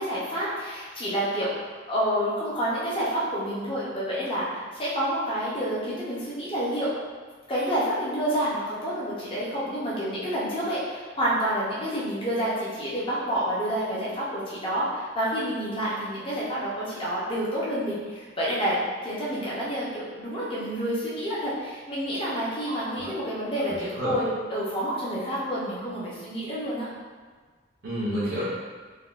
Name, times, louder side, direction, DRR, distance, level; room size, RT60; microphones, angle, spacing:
voice 1, 0.0-6.9 7.5-18.8 19.0-26.9, equal, 30° left, -7 dB, 0.6 m, -29 dB
voice 2, 22.7-23.1 23.7-24.2 27.8-28.4, equal, 75° right, -10 dB, 0.7 m, -30 dB
3.5 x 2.2 x 2.3 m, 1.4 s
head